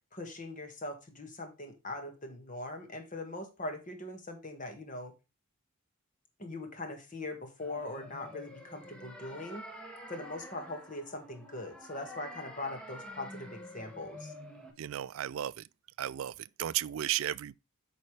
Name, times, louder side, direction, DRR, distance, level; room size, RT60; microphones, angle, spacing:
voice 1, 0.1-5.1 6.4-9.7 10.1-14.3, left 2 dB, 35° left, 1.7 m, -41 dB
sound 1, 7.6-14.7, left 1 dB, 5° left, 1.2 m, -48 dB
voice 2, 14.8-15.7 16.0-17.5, right 12 dB, 65° right, 0.3 m, -34 dB
8.7 x 5.4 x 3.2 m
head